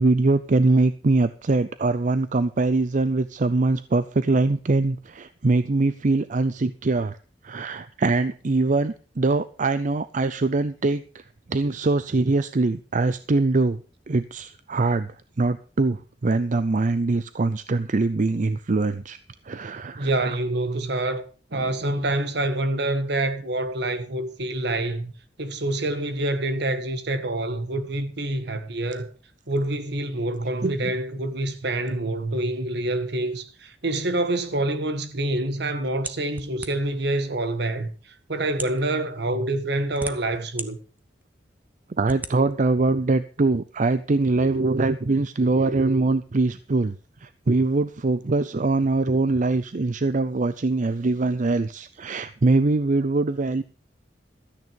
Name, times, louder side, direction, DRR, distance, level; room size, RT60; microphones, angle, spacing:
voice 1, 0.0-7.2 7.4-13.8 14.1-19.2 19.4-20.4 30.6-30.9 42.0-46.9 47.2-53.6, right 3 dB, 45° right, 0.5 m, -23 dB
voice 2, 20.0-21.2 21.5-25.1 25.4-29.1 29.5-37.9 38.3-40.8, right 1 dB, 65° right, 1.6 m, -26 dB
sound 1, 36.0-37.0 37.8-37.9 38.5-38.8 39.6-40.7 41.2-41.3 42.0-42.3, right 2 dB, 10° right, 1.0 m, -35 dB
13.5 x 9.3 x 5.3 m
head